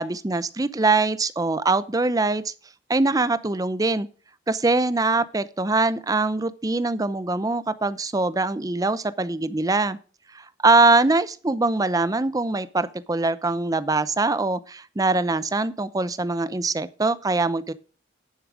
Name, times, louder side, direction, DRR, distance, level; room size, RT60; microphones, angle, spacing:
voice 1, 0.0-2.5 2.9-4.1 4.5-10.0 10.3-17.7, right 3 dB, 20° right, 0.5 m, -23 dB
10.5 x 7.2 x 4.9 m
head